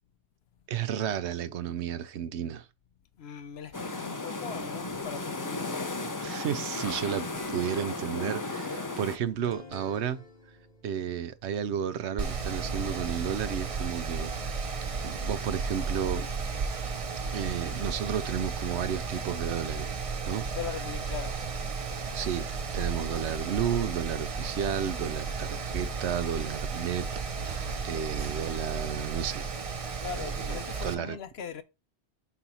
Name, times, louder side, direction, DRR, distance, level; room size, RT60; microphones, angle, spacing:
voice 1, 0.7-2.7 6.2-10.2 10.8-14.7 15.0-16.3 17.3-20.0 20.2-20.4 22.1-27.1 27.4-29.5 30.2-31.2, right 9 dB, 80° right, 0.9 m, -32 dB
voice 2, 3.2-6.0 6.9-7.0 20.5-21.4 30.0-31.6, left 7 dB, 65° left, 1.0 m, -40 dB
sound 1, 3.7-9.2, left 2 dB, 20° left, 0.6 m, -35 dB
sound 2, 7.0-17.6, left 2 dB, 40° left, 1.3 m, -51 dB
Mechanical fan, 12.2-30.9, right 4 dB, 35° right, 0.6 m, -34 dB
4.6 x 4.3 x 5.5 m
omnidirectional pair, 1.1 m